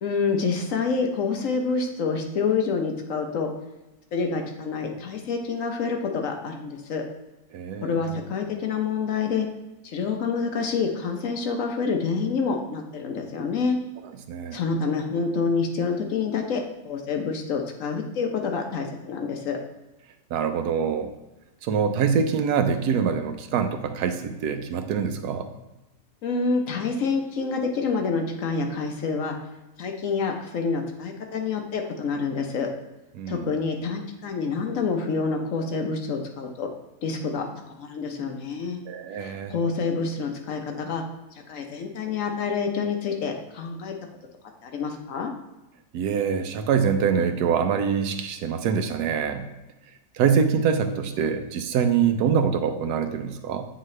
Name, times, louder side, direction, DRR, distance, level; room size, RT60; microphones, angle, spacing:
voice 1, 0.0-3.5 4.1-7.0 7.8-9.5 9.8-13.8 14.5-19.6 26.2-29.4 29.8-32.7 33.3-36.7 37.0-37.5 37.8-38.8 39.2-41.0 41.5-43.9 44.6-45.3, left 5 dB, 60° left, 3 dB, 1.1 m, -27 dB
voice 2, 7.5-8.1 14.3-14.6 20.3-21.1 21.6-25.5 33.2-33.5 38.9-39.5 45.9-49.4 50.2-53.6, right 7 dB, 85° right, 7 dB, 1.2 m, -24 dB
8.1 x 4.0 x 3.2 m, 1.0 s
omnidirectional pair, 1.6 m